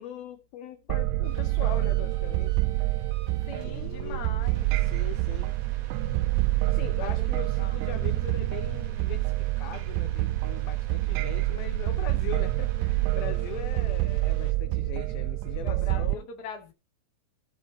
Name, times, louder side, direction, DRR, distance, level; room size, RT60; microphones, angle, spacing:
voice 1, 0.0-2.6 3.6-4.2 4.8-5.5 6.7-16.3, left 11 dB, 80° left, 2.1 m, -41 dB
sound 1, 0.9-16.2, right 18 dB, 80° right, 2.7 m, -27 dB
sound 2, 1.2-14.5, right 8 dB, 60° right, 2.3 m, -52 dB
voice 2, 3.4-4.7 7.0-7.3 7.6-7.8 15.6-16.7, left 6 dB, 40° left, 1.4 m, -41 dB
16.0 x 5.8 x 4.0 m
omnidirectional pair, 5.3 m